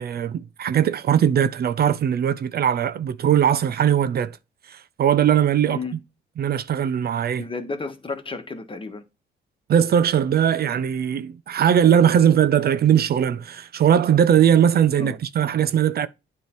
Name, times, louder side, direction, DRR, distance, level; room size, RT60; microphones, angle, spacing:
voice 1, 0.0-4.4 4.7-5.8 6.4-7.4 9.7-16.1, right 9 dB, 50° right, 0.5 m, -20 dB
voice 2, 7.4-9.0 15.0-15.2, left 4 dB, 25° left, 1.5 m, -32 dB
9.2 x 3.5 x 4.5 m
cardioid pair, 90°, 20 cm